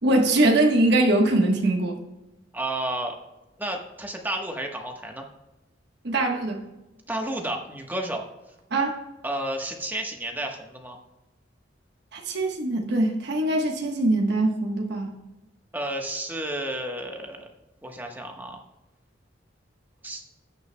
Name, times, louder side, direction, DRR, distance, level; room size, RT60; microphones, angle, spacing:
voice 1, 0.0-2.0 6.0-6.6 8.7-9.0 12.1-15.1, right 2 dB, 65° right, 1 dB, 1.2 m, -22 dB
voice 2, 2.5-3.2 3.6-5.2 7.1-8.2 9.2-11.0 15.7-17.5 17.8-18.6 20.0-20.2, right 1 dB, 10° right, 2 dB, 1.1 m, -31 dB
17.0 x 6.5 x 2.2 m, 1.0 s
head